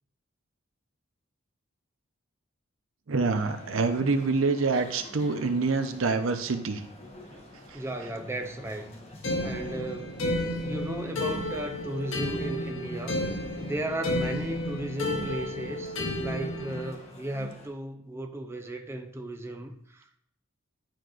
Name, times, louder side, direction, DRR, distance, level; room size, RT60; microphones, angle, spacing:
voice 1, 3.1-6.8 7.7-7.8, right 4 dB, 85° right, 0.7 m, -26 dB
sound 1, 3.3-17.7, left 1 dB, 30° left, 1.2 m, -49 dB
voice 2, 7.7-9.0 9.4-10.3 10.5-13.2 13.6-20.2, right 1 dB, 15° right, 0.5 m, -35 dB
sound 2, 9.2-16.9, left 1 dB, 75° left, 1.1 m, -32 dB
10.5 x 4.6 x 2.5 m
head